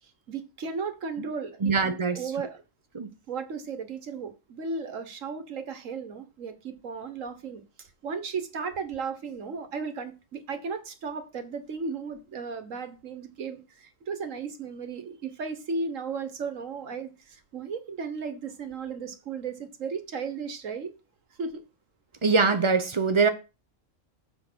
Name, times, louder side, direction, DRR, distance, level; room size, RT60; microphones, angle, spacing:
voice 1, 0.3-1.7 2.1-2.6 3.3-7.6 8.0-20.9 21.4-21.6, right 5 dB, 70° right, 1.6 m, -35 dB
voice 2, 1.6-2.2 2.9-3.1 22.2-23.3, right 4 dB, 25° right, 0.8 m, -23 dB
7.5 x 5.3 x 6.2 m
omnidirectional pair, 1.4 m